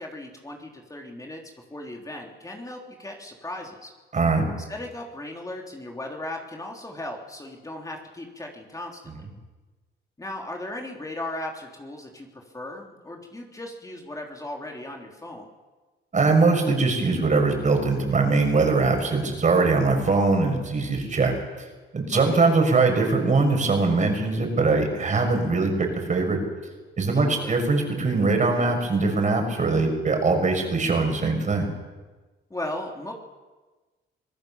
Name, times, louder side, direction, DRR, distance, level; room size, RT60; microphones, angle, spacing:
voice 1, 0.0-1.4 1.7-3.9 4.7-9.0 10.2-15.5 22.1-22.5 27.1-27.6 32.5-33.1, left 1 dB, 15° left, 0 dB, 3.2 m, -37 dB
voice 2, 4.1-4.4 9.1-9.2 16.1-21.3 21.9-26.4 27.0-31.7, right 3 dB, 40° right, 3 dB, 6.3 m, -22 dB
26.0 x 17.5 x 7.2 m, 1.3 s
cardioid pair, 90°, 20 cm